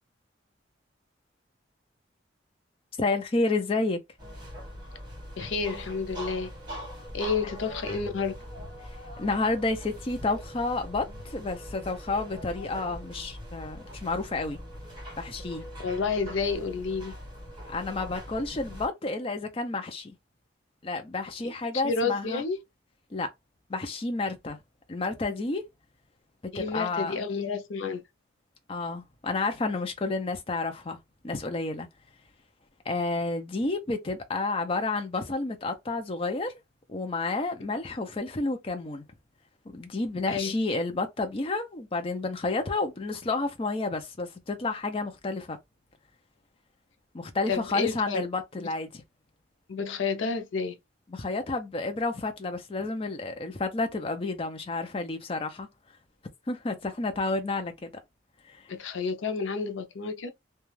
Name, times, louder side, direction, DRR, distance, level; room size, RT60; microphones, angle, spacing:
voice 1, 3.0-4.0 9.2-14.6 15.2-15.6 17.6-20.1 20.8-22.4 23.1-23.3 23.7-24.6 24.9-25.6 26.5-27.2 28.7-31.0 31.2-31.9 32.9-36.5 36.9-39.0 39.7-45.6 47.1-49.0 51.1-55.7 56.5-57.9, left 3 dB, 30° left, 0.5 m, -30 dB
sound 1, 4.2-18.9, equal, 25° right, 1.4 m, -42 dB
voice 2, 5.4-6.5 7.1-8.4 15.8-17.1 21.4-22.6 26.5-28.0 40.3-40.5 47.5-48.3 49.7-50.8 58.7-60.3, left 5 dB, 80° left, 0.5 m, -30 dB
2.4 x 2.2 x 3.1 m
head